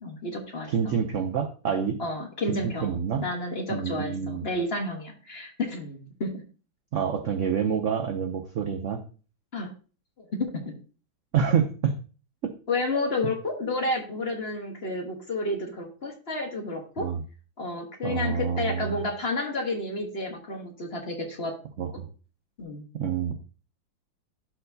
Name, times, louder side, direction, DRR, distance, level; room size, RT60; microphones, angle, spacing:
voice 1, 0.0-0.9 2.0-6.3 9.5-9.7 10.3-10.7 12.7-17.1 17.6-21.5 22.6-22.8, left 2 dB, 35° left, 2 dB, 1.2 m, -31 dB
voice 2, 0.7-2.0 2.5-3.2 3.7-4.4 6.9-9.0 11.3-11.9 12.4-12.5 17.0-17.2 18.0-18.9 21.8-22.1 23.0-23.3, right 7 dB, 70° right, 6 dB, 0.7 m, -27 dB
11.5 x 4.4 x 2.7 m, 0.37 s
omnidirectional pair, 2.1 m